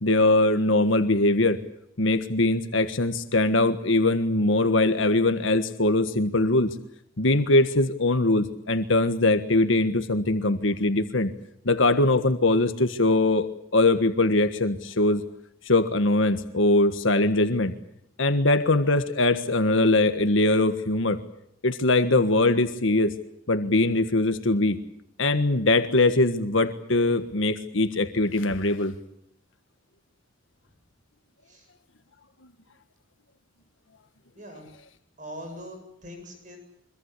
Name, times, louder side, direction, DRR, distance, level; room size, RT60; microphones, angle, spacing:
voice 1, 0.0-1.6 2.0-6.7 7.2-11.3 11.6-15.2 15.6-17.7 18.2-21.2 21.6-23.1 23.5-24.8 25.2-28.9, left 2 dB, 90° left, 9 dB, 1.6 m, -22 dB
voice 2, 34.4-34.7 35.2-36.6, equal, 40° right, 5 dB, 7.9 m, -41 dB
24.5 x 23.0 x 8.4 m, 0.75 s
head